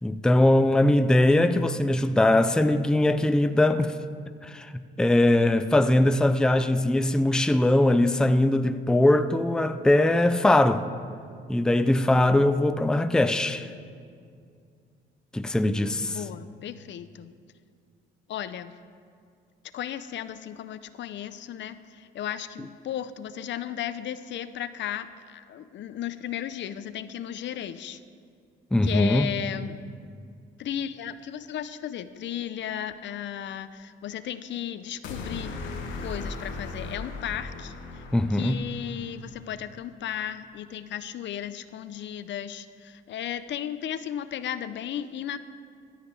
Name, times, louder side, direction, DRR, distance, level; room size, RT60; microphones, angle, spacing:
voice 1, 0.0-4.0 4.4-10.8 11.5-13.7 15.3-16.2 28.7-29.3 38.1-38.6, left 1 dB, 5° left, 0.4 m, -21 dB
voice 2, 2.2-2.9 16.0-17.3 18.3-18.7 19.7-28.0 28.8-29.8 30.6-35.5 36.0-38.0 38.3-45.4, left 10 dB, 65° left, 0.6 m, -35 dB
sound 1, 35.0-39.3, left 3 dB, 85° left, 1.4 m, -37 dB
13.0 x 5.8 x 8.9 m
cardioid pair, 90°, 20 cm